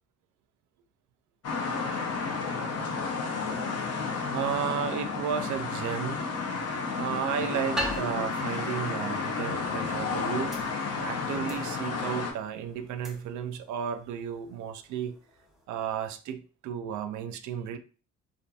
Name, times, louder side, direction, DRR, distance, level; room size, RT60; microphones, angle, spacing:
sound 1, 1.4-12.3, left 4 dB, 55° left, 0.6 m, -32 dB
voice 1, 4.3-6.3 7.0-10.5 11.0-15.2 15.7-17.8, right 8 dB, 75° right, 0.4 m, -33 dB
sound 2, 5.5-15.7, right 1 dB, ahead, 0.7 m, -43 dB
2.6 x 2.5 x 2.3 m
cardioid pair, 90°, 30 cm